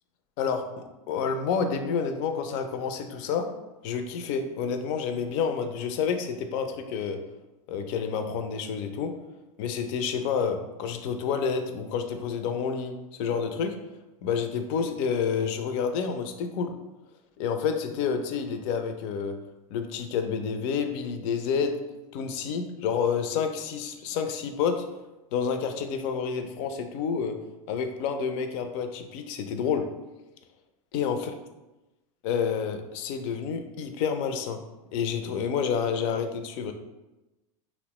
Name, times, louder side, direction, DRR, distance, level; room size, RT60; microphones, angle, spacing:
voice 1, 0.4-0.7 1.1-3.5 3.8-7.2 7.7-9.1 9.6-12.9 13.2-13.7 14.2-16.7 17.4-19.4 19.7-21.8 22.1-24.8 25.3-27.4 27.7-29.9 30.9-31.3 32.2-34.6 34.9-36.7, left 6 dB, 55° left, 7 dB, 0.4 m, -29 dB
2.8 x 2.1 x 2.9 m, 1.0 s
hypercardioid pair, 95°, 19 cm